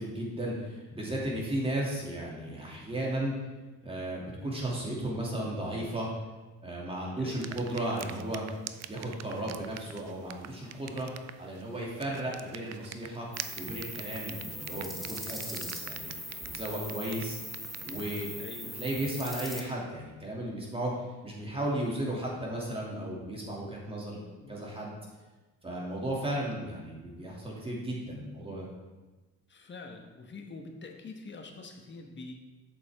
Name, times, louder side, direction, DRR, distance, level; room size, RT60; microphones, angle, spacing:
voice 1, 0.0-3.3 3.8-6.1 6.6-8.4 8.9-11.1 11.4-13.3 13.5-16.1 16.4-17.4 17.8-18.3 18.8-20.9 21.2-24.9 25.6-28.7, right 1 dB, 20° right, -3 dB, 2.5 m, -35 dB
voice 2, 7.2-7.6 18.4-18.7 24.4-24.7 29.5-32.3, left 3 dB, 40° left, 3 dB, 1.2 m, -46 dB
sound 1, 7.3-18.4, right 10 dB, 60° right, 0.5 m, -46 dB
sound 2, 13.3-19.6, equal, ahead, 1.2 m, -40 dB
8.5 x 6.8 x 3.6 m, 1.2 s
cardioid pair, 90°, 30 cm